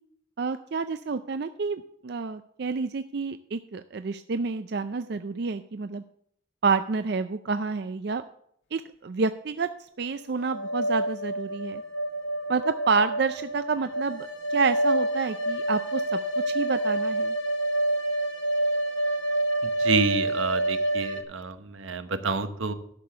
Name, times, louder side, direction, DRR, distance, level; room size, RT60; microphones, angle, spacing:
voice 1, 0.4-6.0 6.6-8.2 8.7-9.7 10.0-11.8 12.5-16.0 16.5-17.3, right 4 dB, 55° right, 10 dB, 0.4 m, -29 dB
sound 1, 10.4-21.2, right 1 dB, 75° left, 1.5 m, -28 dB
voice 2, 19.8-22.7, right 4 dB, 85° right, 10 dB, 1.1 m, -28 dB
11.5 x 6.7 x 7.0 m, 0.70 s
head